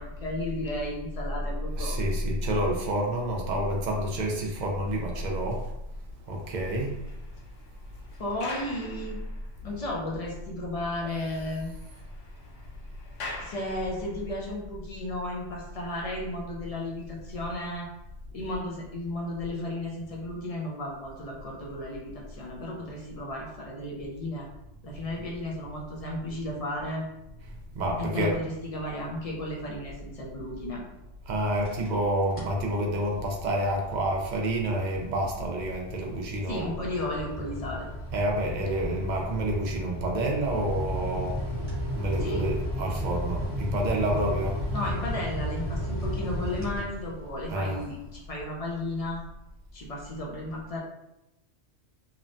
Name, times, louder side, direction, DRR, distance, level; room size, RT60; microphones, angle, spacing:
voice 1, 0.0-2.0 8.2-9.2 9.6-11.8 13.4-17.9 18.3-24.5 24.8-27.1 28.0-30.8 36.4-37.9 42.2-42.4 44.7-49.2 49.7-50.8, left 1 dB, 55° left, -3 dB, 0.4 m, -34 dB
voice 2, 1.8-5.7 6.3-6.9 27.7-28.3 31.3-36.7 38.1-41.4 41.9-44.6 47.5-47.8, right 1 dB, 60° right, 0 dB, 0.5 m, -28 dB
sound 1, 6.3-9.8 10.3-10.4 10.7-10.8 11.1-14.4, left 2 dB, 75° left, 1.0 m, -44 dB
sound 2, 31.5-32.0 32.3-32.6 33.1-47.4, equal, 10° right, 0.8 m, -34 dB
3.0 x 2.1 x 2.5 m, 0.89 s
omnidirectional pair, 1.3 m